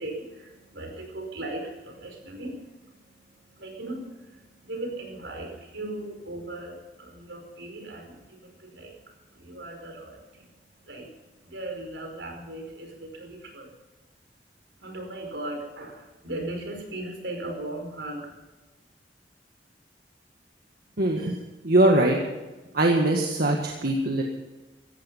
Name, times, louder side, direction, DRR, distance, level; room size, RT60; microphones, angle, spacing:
voice 1, 0.0-13.7 14.8-18.3, right 1 dB, 80° right, 3 dB, 5.2 m, -38 dB
voice 2, 21.0-21.4 21.6-22.2 22.7-24.2, right 1 dB, 60° right, 1 dB, 1.8 m, -21 dB
17.0 x 14.5 x 5.5 m, 1.2 s
head